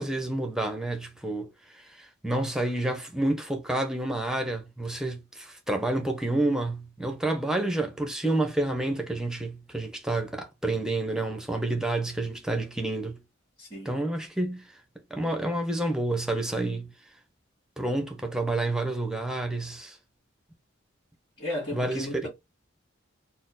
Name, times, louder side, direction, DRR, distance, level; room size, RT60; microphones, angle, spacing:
voice 1, 0.0-1.5 1.7-13.2 13.8-14.8 15.1-16.9 17.8-20.0 21.7-22.3, right 2 dB, 5° right, 0.7 m, -29 dB
voice 2, 13.6-13.9 21.4-22.3, left 1 dB, 20° left, 1.8 m, -34 dB
4.3 x 2.0 x 3.8 m
head